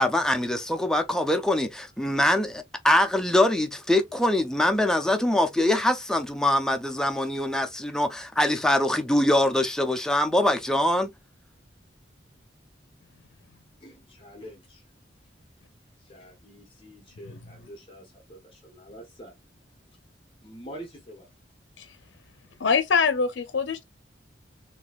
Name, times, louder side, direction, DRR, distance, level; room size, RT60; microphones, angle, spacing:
voice 1, 0.0-8.1 8.4-11.1, left 1 dB, 5° left, 0.4 m, -23 dB
voice 2, 13.8-14.8 16.0-19.4 20.4-21.3, equal, 30° left, 0.8 m, -46 dB
voice 3, 22.6-23.8, left 5 dB, 85° left, 0.5 m, -24 dB
3.9 x 2.6 x 2.3 m
head